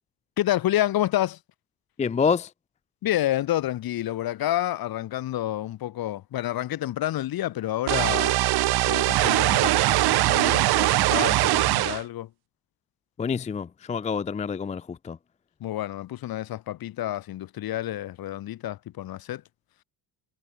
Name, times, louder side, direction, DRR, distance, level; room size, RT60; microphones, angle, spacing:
voice 1, 0.4-1.4 3.0-8.4 8.8-12.3 15.6-19.4, left 13 dB, 60° left, 2.8 m, -29 dB
voice 2, 2.0-2.5 13.2-15.2, left 6 dB, 15° left, 0.5 m, -27 dB
sound 1, 7.9-12.0, right 17 dB, 65° right, 1.0 m, -21 dB
cardioid pair, 175°, 41 cm